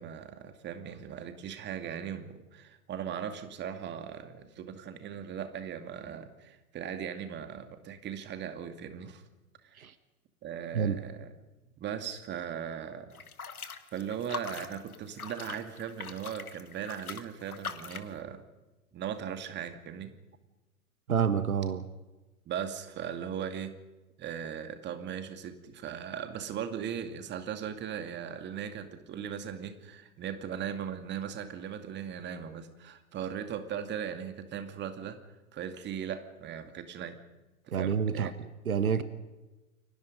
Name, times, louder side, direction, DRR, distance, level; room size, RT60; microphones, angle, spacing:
voice 1, 0.0-9.2 9.6-9.8 10.4-11.3 11.8-13.2 13.9-18.4 18.9-20.2 22.5-23.7 24.2-35.2 35.5-37.2 37.6-38.3, right 8 dB, 25° right, 8 dB, 2.4 m, -38 dB
sound 1, 13.1-18.1, left 5 dB, 75° left, 1.9 m, -42 dB
voice 2, 21.1-21.8 37.7-38.3 38.6-39.0, right 7 dB, 70° right, 13 dB, 1.4 m, -28 dB
29.5 x 24.0 x 5.3 m, 1.1 s
figure-of-eight pair, 100°, 44 cm